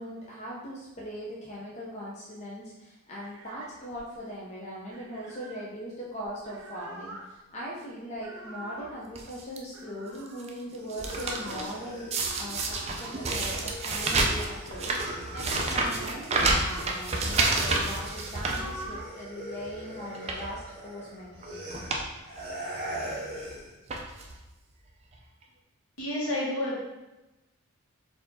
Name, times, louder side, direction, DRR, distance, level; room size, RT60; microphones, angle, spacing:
voice 1, 0.0-15.0 15.3-21.6, equal, 30° left, -5 dB, 0.6 m, -40 dB
sound 1, 3.2-4.3 4.9-5.6 6.2-7.3 8.1-9.0 9.7-10.5 11.1-11.8 12.7-14.2 14.5-15.5 16.0-16.9 17.2-18.0 18.3-19.1, right 2 dB, 75° right, 0.7 m, -43 dB
sound 2, 9.1-9.6 10.1-11.7 12.1-19.2 19.6-19.7 20.1-20.5 21.3-21.4 21.7-22.1 22.4-22.5 23.4-23.5 23.9-24.4 25.1-25.2 25.4-25.5, right 3 dB, 30° right, 0.4 m, -29 dB
sound 3, 10.7-17.0 17.2-23.8, right 1 dB, 45° right, 1.3 m, -42 dB
voice 2, 26.0-26.8, left 1 dB, 70° left, -5 dB, 1.4 m, -29 dB
4.4 x 2.7 x 3.9 m, 1.0 s
head